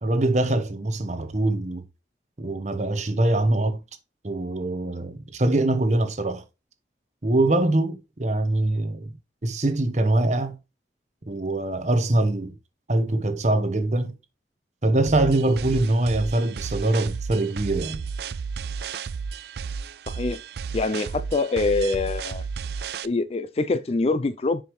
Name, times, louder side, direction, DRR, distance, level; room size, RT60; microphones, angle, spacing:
voice 1, 0.0-1.8 2.4-3.8 4.2-6.4 7.2-9.1 9.4-10.6 11.3-12.5 12.9-14.1 14.8-18.0, right 2 dB, 40° right, 1.0 m, -23 dB
sound 1, 15.1-23.1, right 5 dB, 65° right, 0.4 m, -33 dB
voice 2, 20.7-22.4 23.0-24.6, left 3 dB, 35° left, 0.4 m, -24 dB
6.8 x 5.2 x 3.1 m
head